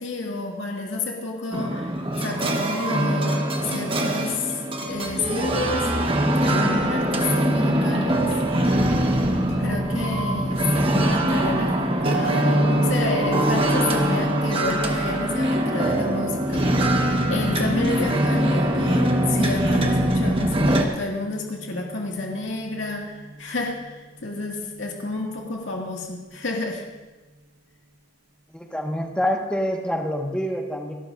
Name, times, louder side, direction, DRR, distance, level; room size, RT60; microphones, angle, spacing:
voice 1, 0.0-5.9 6.4-9.0 9.6-16.7 17.3-26.8, left 3 dB, 80° left, -1 dB, 2.1 m, -30 dB
sound 1, 1.5-20.8, right 1 dB, 30° right, 1.3 m, -23 dB
Piano, 12.0-22.9 23.2-23.4 23.7-23.9 24.2-24.5 24.8-24.9, right 1 dB, 55° right, 1.3 m, -31 dB
voice 2, 28.5-30.9, equal, 5° left, 1 dB, 1.5 m, -26 dB
27.0 x 12.5 x 2.6 m, 1.2 s
head